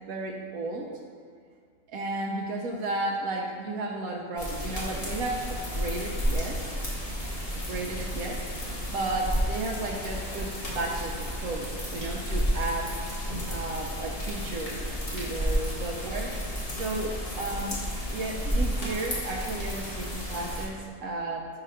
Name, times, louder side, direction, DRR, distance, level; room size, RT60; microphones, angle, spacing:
voice 1, 0.1-0.9 1.9-6.6 7.5-8.4 8.9-12.9 13.5-16.3 16.7-17.8 18.1-21.4, right 2 dB, 90° right, -1 dB, 1.1 m, -33 dB
sound 1, 4.4-20.7, equal, 45° left, 1.5 m, -32 dB
5.0 x 4.8 x 5.5 m, 2.1 s
omnidirectional pair, 1.5 m